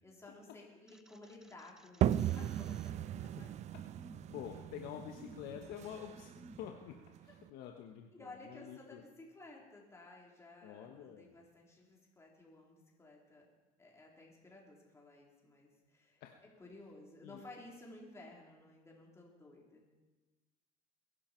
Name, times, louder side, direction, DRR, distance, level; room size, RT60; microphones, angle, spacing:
voice 1, 0.0-3.5 8.1-13.5 13.8-16.2 16.6-19.9, left 2 dB, 15° left, -2 dB, 3.8 m, -55 dB
sound 1, 0.9-6.7, right 1 dB, 5° right, 0.6 m, -58 dB
sound 2, 2.0-7.5, right 12 dB, 45° right, 0.4 m, -37 dB
voice 2, 4.3-6.3 6.6-9.0 10.6-11.4 16.2-16.3 17.2-17.4, left 9 dB, 75° left, 3 dB, 1.3 m, -48 dB
21.5 x 11.5 x 4.5 m, 1.2 s
cardioid pair, 115°, 16 cm